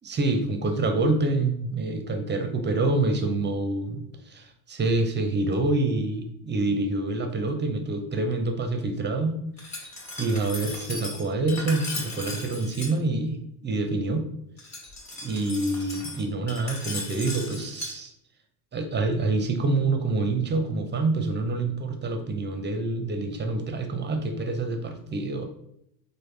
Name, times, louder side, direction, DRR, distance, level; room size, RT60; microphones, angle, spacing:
voice 1, 0.0-9.4 9.7-9.8 10.2-13.4 13.6-14.3 15.2-18.1 18.7-25.5, right 2 dB, 25° right, 5 dB, 0.5 m, -26 dB
Glass, 9.6-12.9 14.6-17.9, left 2 dB, 40° left, 1.3 m, -37 dB
3.4 x 2.1 x 3.2 m, 0.75 s
supercardioid pair, 75°, 44 cm